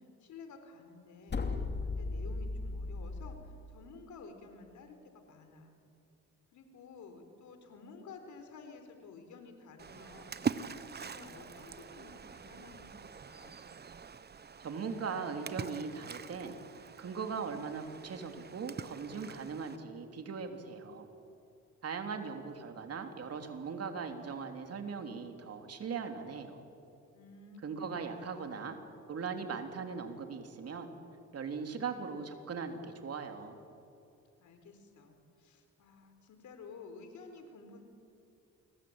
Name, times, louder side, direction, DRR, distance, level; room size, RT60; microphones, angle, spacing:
voice 1, 0.0-5.8 6.5-10.7 11.0-13.5 27.1-27.9 28.2-28.7 34.4-37.8, left 4 dB, 70° left, 6 dB, 4.5 m, -52 dB
sound 1, 1.3-3.4, left 3 dB, 35° left, 2.7 m, -36 dB
Splash splatter, 9.8-19.8, right 6 dB, 35° right, 1.1 m, -43 dB
voice 2, 14.6-16.5 17.0-21.1 21.8-26.6 27.6-28.8 29.1-30.9 31.3-33.6, right 5 dB, 55° right, 5 dB, 3.3 m, -39 dB
29.0 x 21.5 x 8.9 m, 2.7 s
cardioid pair, 90°, 30 cm